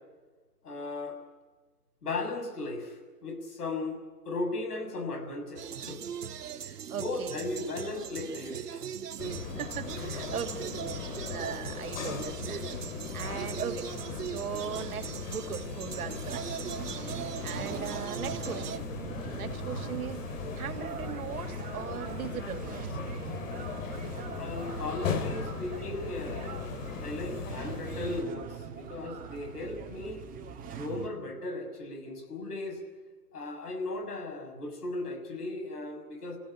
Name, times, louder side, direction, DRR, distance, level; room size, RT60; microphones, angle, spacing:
voice 1, 0.6-1.2 2.0-4.0 4.3-6.0 6.6-8.8 24.4-30.2 30.7-32.8 33.3-36.4, left 2 dB, 75° left, 4 dB, 7.0 m, -36 dB
music cuban band live ext, 5.6-18.8, right 8 dB, 80° right, 1.1 m, -40 dB
voice 2, 6.9-7.4 9.4-11.0 11.3-13.9 14.2-16.7 17.4-18.9 19.3-23.0, right 8 dB, 65° right, 8 dB, 2.7 m, -39 dB
sound 1, 9.2-28.2, left 5 dB, 55° left, 3.3 m, -38 dB
sound 2, 14.1-31.1, right 7 dB, 15° right, 2.7 m, -43 dB
26.5 x 16.5 x 10.0 m, 1.3 s
hypercardioid pair, 130°, 47 cm